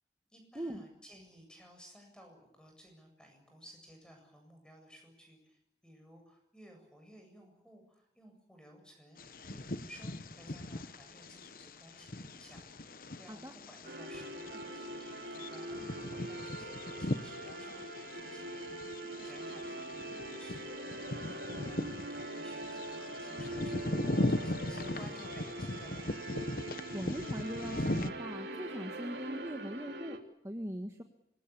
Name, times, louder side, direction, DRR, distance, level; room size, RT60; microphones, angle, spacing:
voice 1, 0.3-26.1, equal, 5° left, 3 dB, 7.9 m, -57 dB
Bird vocalization bird call bird song, 9.2-28.1, left 1 dB, 50° left, 1.1 m, -39 dB
sound 1, 13.8-30.2, right 1 dB, 80° right, 3.3 m, -42 dB
voice 2, 26.9-30.2 30.4-31.0, equal, 15° right, 4 dB, 1.6 m, -40 dB
25.5 x 21.5 x 8.6 m, 0.75 s
head